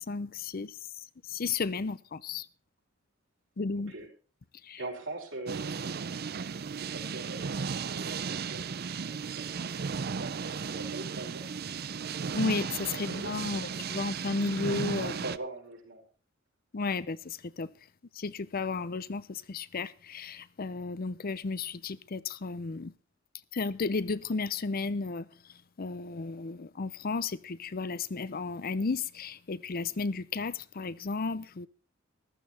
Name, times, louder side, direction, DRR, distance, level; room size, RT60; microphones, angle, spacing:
voice 1, 0.1-2.5 3.6-3.9 4.6-4.8 12.3-15.1 16.7-17.7 18.1-22.9 23.5-25.3 25.8-31.7, left 4 dB, 50° left, 0.6 m, -33 dB
voice 2, 4.8-6.0 6.5-7.5 7.8-11.5 13.1-13.8 15.0-16.0, right 2 dB, 70° right, 4.9 m, -43 dB
sound 1, 5.5-15.4, right 5 dB, 50° right, 0.5 m, -35 dB
14.5 x 13.0 x 4.3 m
head